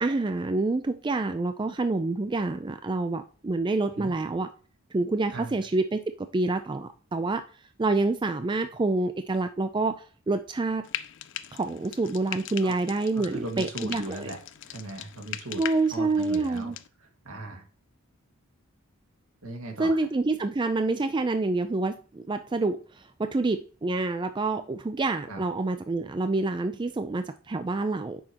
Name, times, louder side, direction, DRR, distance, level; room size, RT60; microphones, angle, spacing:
voice 1, 0.0-4.5 4.9-7.4 7.8-10.8 11.5-14.3 15.6-16.8 19.8-28.2, right 3 dB, 20° right, 9 dB, 0.4 m, -27 dB
Frying (food), 10.8-16.9, left 12 dB, 60° left, 0.4 m, -40 dB
voice 2, 13.2-15.6 15.9-16.7 17.0-17.7 19.4-20.0 25.3-25.4, right 2 dB, 70° right, 3 dB, 1.9 m, -38 dB
8.7 x 6.2 x 2.9 m, 0.39 s
head